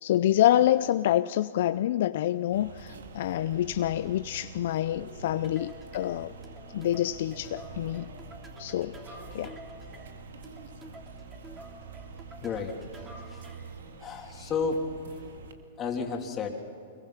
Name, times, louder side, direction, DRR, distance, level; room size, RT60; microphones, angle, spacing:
voice 1, 0.0-6.3 6.7-8.1 8.6-9.0 9.3-9.6, left 12 dB, 65° left, 12 dB, 0.5 m, -27 dB
sound 1, 2.5-15.5, right 3 dB, 85° right, 2.1 m, -46 dB
voice 2, 4.9-5.2 12.4-12.8 13.3-13.5 14.0-14.9 15.8-16.5, left 5 dB, 25° left, 2 dB, 3.1 m, -32 dB
sound 2, 5.4-13.8, right 2 dB, 20° right, 3.0 m, -50 dB
25.5 x 22.0 x 5.9 m, 2.5 s
hypercardioid pair, 120°, 0 cm